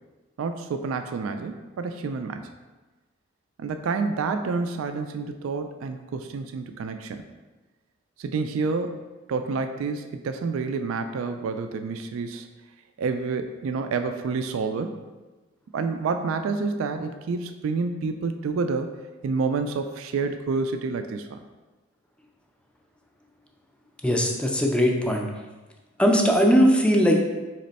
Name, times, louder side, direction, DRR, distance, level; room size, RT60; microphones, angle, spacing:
voice 1, 0.4-2.5 3.6-7.2 8.2-9.0 9.3-12.5 13.0-15.0 15.7-18.9 19.2-21.4, right 4 dB, 70° right, 8 dB, 0.3 m, -28 dB
voice 2, 24.0-25.3 26.0-27.2, equal, 5° left, 1 dB, 0.4 m, -19 dB
4.2 x 3.1 x 4.0 m, 1.2 s
head